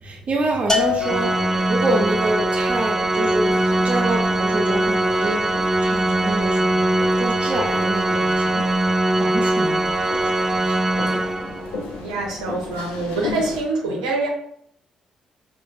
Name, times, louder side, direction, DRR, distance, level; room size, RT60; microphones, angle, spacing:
voice 1, 0.0-1.4 1.7-5.4 5.8-8.6 9.2-10.1 10.5-10.8, right 2 dB, 40° right, 2 dB, 0.7 m, -27 dB
sound 1, 0.7-13.6, left 3 dB, 70° left, 0.6 m, -35 dB
Bell, 0.7-2.1, left 5 dB, 20° left, 0.7 m, -25 dB
Organ, 1.0-11.8, right 1 dB, 15° right, 0.3 m, -21 dB
voice 2, 12.0-14.3, right 2 dB, 80° right, -1 dB, 0.7 m, -25 dB
5.1 x 2.5 x 2.4 m, 0.67 s
figure-of-eight pair, 40°, 3 cm